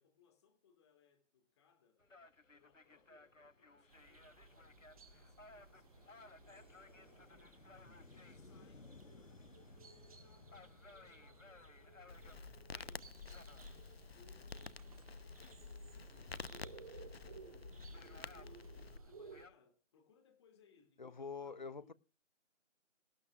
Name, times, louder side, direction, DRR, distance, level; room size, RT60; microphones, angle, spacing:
voice 1, 0.0-2.1 2.5-7.6 8.1-12.4 12.7-13.8 14.1-16.6 18.3-18.7 19.1-21.9, left 6 dB, 20° left, 2.9 m, -71 dB
sound 1, 2.0-19.5, left 3 dB, 85° left, 1.4 m, -60 dB
sound 2, 3.9-19.5, right 4 dB, 30° right, 1.9 m, -59 dB
Crackle, 12.1-19.0, left 4 dB, 55° left, 1.0 m, -50 dB
voice 2, 21.0-21.9, left 5 dB, 40° left, 0.6 m, -46 dB
18.5 x 17.0 x 2.5 m
figure-of-eight pair, 155°, 37 cm